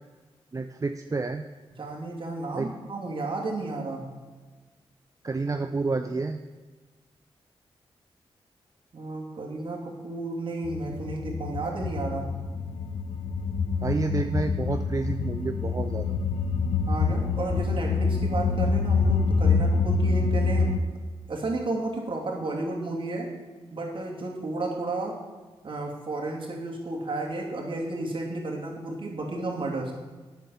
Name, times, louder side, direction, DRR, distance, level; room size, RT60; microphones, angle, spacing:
voice 1, 0.5-1.5 2.5-2.7 5.2-6.4 13.8-16.1, right 3 dB, 35° right, 7 dB, 0.5 m, -29 dB
voice 2, 1.7-4.1 8.9-12.3 16.9-20.7 21.3-23.3 23.7-25.2 25.6-29.9, right 2 dB, 55° right, -1 dB, 2.7 m, -32 dB
sound 1, 10.7-20.8, left 4 dB, 80° left, 0.8 m, -26 dB
9.2 x 6.8 x 7.1 m, 1.3 s
cardioid pair, 65°, 10 cm